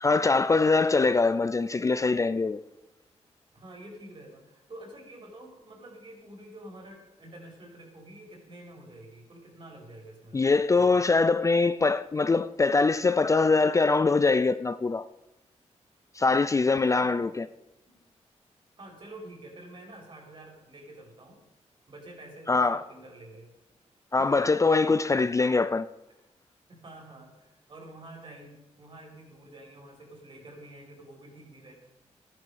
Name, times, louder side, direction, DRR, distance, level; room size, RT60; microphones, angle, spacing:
voice 1, 0.0-2.6 10.3-15.1 16.2-17.5 22.5-22.8 24.1-25.9, left 3 dB, 25° left, 0.4 m, -23 dB
voice 2, 3.5-10.4 10.7-11.0 16.9-17.2 17.9-18.0 18.8-21.4 21.9-23.5 24.2-24.5 26.7-31.7, right 1 dB, 45° right, 4.7 m, -48 dB
15.0 x 11.0 x 5.0 m
wide cardioid pair, 105°, 12 cm